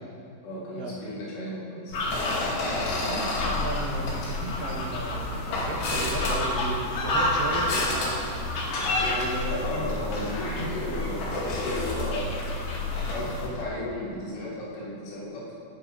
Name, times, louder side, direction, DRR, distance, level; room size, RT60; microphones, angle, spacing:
voice 1, 0.4-2.0 9.0-12.3 13.0-15.5, left 1 dB, 90° left, -7 dB, 5.8 m, -34 dB
sound 1, 1.9-13.6, left 2 dB, 70° left, 4.6 m, -31 dB
sound 2, 1.9-13.5, left 1 dB, 55° left, 2.5 m, -32 dB
voice 2, 3.0-8.5 9.5-10.0, right 2 dB, 65° right, -2 dB, 2.5 m, -35 dB
18.0 x 8.9 x 5.4 m, 2.4 s
omnidirectional pair, 5.2 m